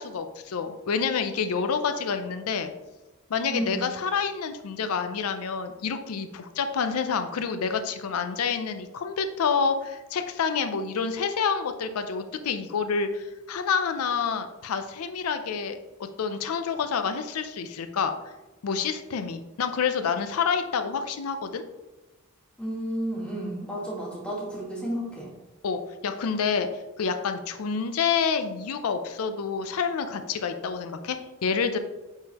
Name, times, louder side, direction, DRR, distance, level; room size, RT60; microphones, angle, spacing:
voice 1, 0.0-2.7 3.3-18.1 18.6-21.6 25.6-31.8, left 6 dB, 90° left, 8 dB, 0.5 m, -28 dB
voice 2, 22.6-25.3, equal, 5° left, -4 dB, 1.5 m, -32 dB
8.8 x 3.7 x 2.9 m, 1.1 s
head